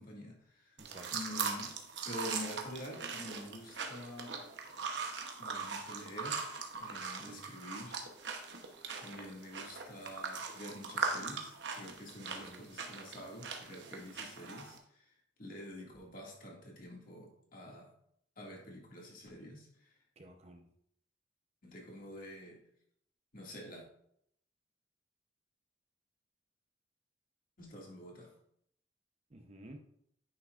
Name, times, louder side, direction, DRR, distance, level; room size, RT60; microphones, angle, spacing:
voice 1, 0.0-0.8 1.1-4.4 5.4-6.5 6.8-8.0 9.0-17.9 18.4-20.0 21.6-22.6 23.3-23.8 27.6-28.3, left 1 dB, 50° left, -2 dB, 2.1 m, -47 dB
voice 2, 0.8-1.1 7.2-7.4 12.2-12.7 20.2-20.7 29.3-29.9, right 1 dB, 35° right, 4 dB, 0.7 m, -53 dB
sound 1, 0.8-14.8, right 5 dB, 70° right, 0.9 m, -40 dB
9.4 x 5.9 x 2.5 m, 0.71 s
head